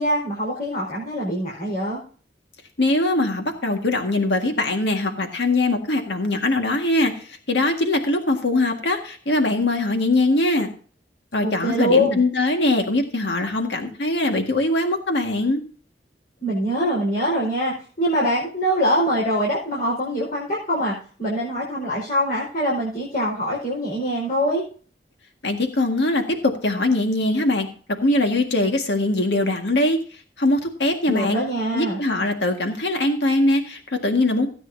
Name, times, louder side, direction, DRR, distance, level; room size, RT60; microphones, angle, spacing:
voice 1, 0.0-2.0 11.4-12.2 16.4-24.6 31.1-32.0, equal, 55° left, -4 dB, 4.8 m, -23 dB
voice 2, 2.8-10.7 11.3-15.6 25.4-27.7 28.0-30.0 30.4-31.4 31.7-34.5, left 2 dB, 75° left, 4 dB, 1.8 m, -22 dB
16.5 x 9.2 x 2.7 m, 0.42 s
head